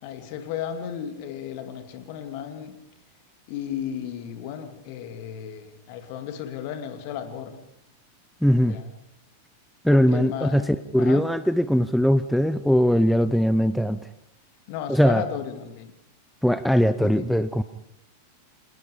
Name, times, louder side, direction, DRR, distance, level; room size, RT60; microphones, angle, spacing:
voice 1, 0.0-2.7 3.5-7.6 8.6-8.9 9.9-11.2 14.7-15.9 17.0-17.2, left 9 dB, 45° left, 7 dB, 2.6 m, -34 dB
voice 2, 8.4-8.8 9.8-14.0 14.9-15.2 16.4-17.6, equal, ahead, 12 dB, 0.7 m, -20 dB
26.5 x 20.0 x 5.2 m, 0.80 s
figure-of-eight pair, 90°, 0 cm